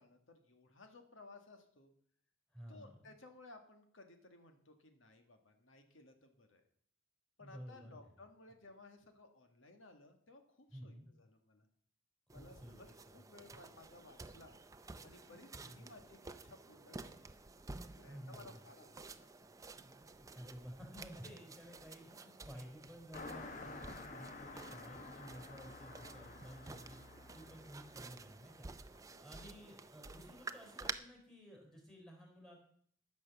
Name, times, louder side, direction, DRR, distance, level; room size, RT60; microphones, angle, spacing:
voice 1, 0.0-1.9 2.7-6.6 7.4-11.7 12.3-14.6 15.0-17.2 18.0-19.5 28.9-29.3, left 2 dB, 75° left, 5 dB, 1.6 m, -59 dB
voice 2, 2.5-3.1 7.4-8.0 10.7-11.1 12.3-13.0 15.2-16.0 18.1-18.6 19.8-27.0 27.3-32.6, equal, ahead, 1 dB, 3.6 m, -54 dB
sound 1, 12.3-30.9, right 3 dB, 15° right, 0.5 m, -52 dB
Car passing by, 23.1-28.9, left 3 dB, 40° left, 1.1 m, -51 dB
13.5 x 6.2 x 6.9 m, 0.62 s
head